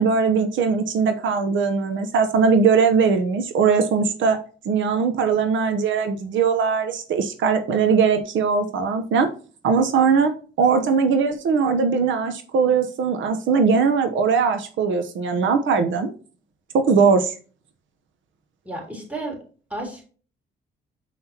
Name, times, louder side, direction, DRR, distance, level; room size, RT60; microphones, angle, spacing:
voice 1, 0.0-9.3 9.6-10.3 10.6-16.1 16.7-17.3, right 5 dB, 75° right, 8 dB, 0.9 m, -20 dB
voice 2, 18.7-19.4 19.7-20.1, right 2 dB, 5° right, 1 dB, 3.6 m, -32 dB
7.5 x 5.7 x 2.9 m, 0.39 s
cardioid pair, 90°, 20 cm